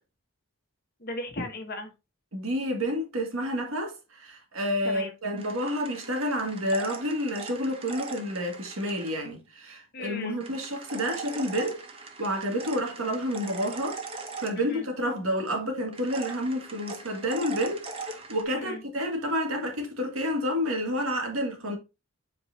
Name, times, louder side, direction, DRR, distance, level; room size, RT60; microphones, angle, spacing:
voice 1, 1.0-1.9 4.8-5.1 9.9-10.4 14.6-14.9 18.5-18.8, left 2 dB, 45° left, 1.2 m, -36 dB
voice 2, 2.3-21.8, equal, 85° right, 2.1 m, -30 dB
sound 1, 5.4-9.1 10.4-15.0 15.9-18.4, right 4 dB, 25° right, 0.8 m, -40 dB
7.8 x 4.6 x 2.8 m
head